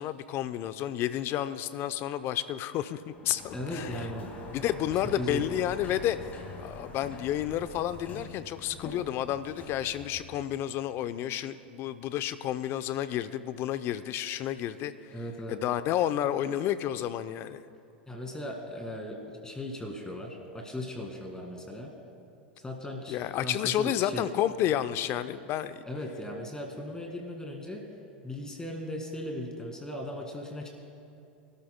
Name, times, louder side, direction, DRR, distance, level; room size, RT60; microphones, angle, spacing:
voice 1, 0.0-4.0 4.5-6.3 6.6-15.2 15.5-17.6 23.1-25.8, left 11 dB, 45° left, 12 dB, 0.6 m, -31 dB
Sliding door, 3.1-10.9, left 3 dB, 30° left, 2.0 m, -45 dB
voice 2, 3.5-4.3 5.2-5.4 15.1-15.6 18.1-21.9 22.6-23.2 23.4-24.3 25.9-27.9 28.2-30.7, left 1 dB, 10° left, 1 dB, 2.0 m, -37 dB
24.5 x 13.0 x 2.2 m, 2.6 s
hypercardioid pair, 95°, 6 cm